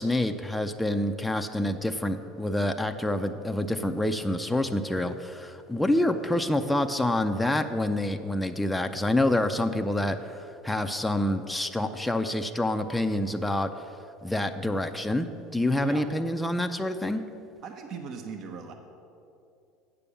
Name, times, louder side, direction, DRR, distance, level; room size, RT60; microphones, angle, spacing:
voice 1, 0.0-13.7 14.2-15.3 15.5-17.2, left 1 dB, 5° left, 6 dB, 0.5 m, -27 dB
voice 2, 17.6-18.7, right 4 dB, 50° right, 5 dB, 0.9 m, -38 dB
8.3 x 6.9 x 6.9 m, 2.7 s
supercardioid pair, 95°, 0 cm